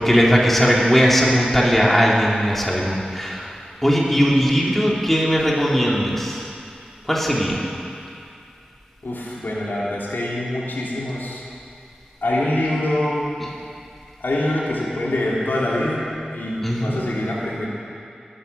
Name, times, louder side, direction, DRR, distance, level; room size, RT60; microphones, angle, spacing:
voice 1, 0.0-3.5 3.8-6.5 7.1-7.6 16.6-17.0, equal, 5° left, -4 dB, 3.1 m, -18 dB
voice 2, 9.0-11.4 12.2-13.3 14.2-16.0 16.3-17.7, left 1 dB, 90° left, -5 dB, 2.9 m, -24 dB
18.0 x 10.0 x 6.9 m, 2.6 s
wide cardioid pair, 45°, 3 cm